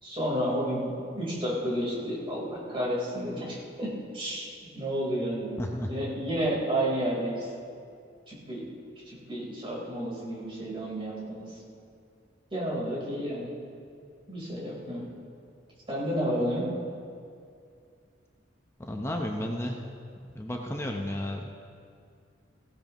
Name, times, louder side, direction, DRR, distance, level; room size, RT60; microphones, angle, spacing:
voice 1, 0.0-5.6 5.9-7.5 8.3-8.6 9.1-11.5 12.5-13.5 14.3-15.1 15.9-16.6, equal, 30° right, -6 dB, 4.0 m, -31 dB
voice 2, 5.6-5.9 18.8-19.8 20.3-21.5, left 1 dB, 15° left, 1 dB, 0.8 m, -32 dB
17.5 x 16.5 x 3.1 m, 2.3 s
head